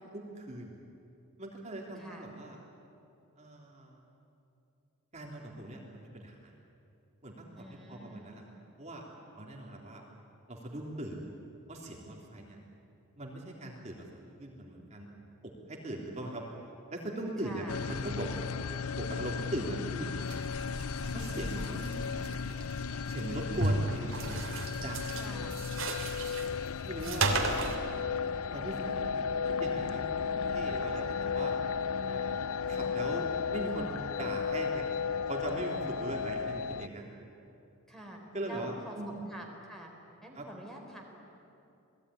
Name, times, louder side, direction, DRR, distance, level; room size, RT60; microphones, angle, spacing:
voice 1, 0.1-0.7 1.4-2.6 3.4-4.0 5.1-6.5 7.2-8.4 8.8-9.0 9.3-10.0 10.5-11.2 11.7-12.6 13.2-14.1 14.4-15.1 15.4-16.4 16.9-18.3 19.0-20.4 21.1-22.0 23.1-25.5 26.8-27.6 28.5-31.5 32.0-32.4 32.7-34.9 35.3-37.1 38.3-39.2 40.3-40.4, right 1 dB, 30° right, -1 dB, 3.2 m, -40 dB
voice 2, 2.0-2.3 7.6-8.3 17.4-17.8 21.4-22.1 25.1-25.5 37.9-38.2 38.5-39.9 40.2-41.0, equal, ahead, 0 dB, 3.9 m, -46 dB
sound 1, 17.7-36.9, left 6 dB, 85° left, 0.6 m, -34 dB
sound 2, 20.2-27.7, right 2 dB, 65° right, 3.0 m, -35 dB
28.0 x 20.0 x 10.0 m, 2.7 s
head